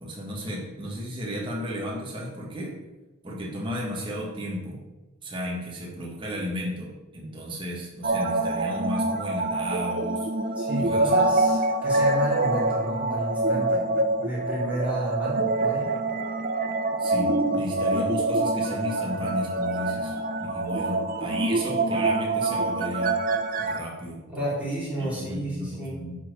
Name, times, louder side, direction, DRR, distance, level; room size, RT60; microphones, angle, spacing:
voice 1, 0.0-2.8 3.2-4.8 5.2-10.3 10.8-11.3 17.0-20.1 20.4-23.2 23.7-24.4 25.0-26.2, equal, 25° right, -3 dB, 1.7 m, -34 dB
sound 1, 8.0-23.8, right 2 dB, 45° right, 0.7 m, -25 dB
voice 2, 10.6-13.9 14.2-15.9 24.3-26.0, right 1 dB, 5° right, -8 dB, 2.5 m, -31 dB
8.0 x 4.4 x 6.6 m, 1.1 s
head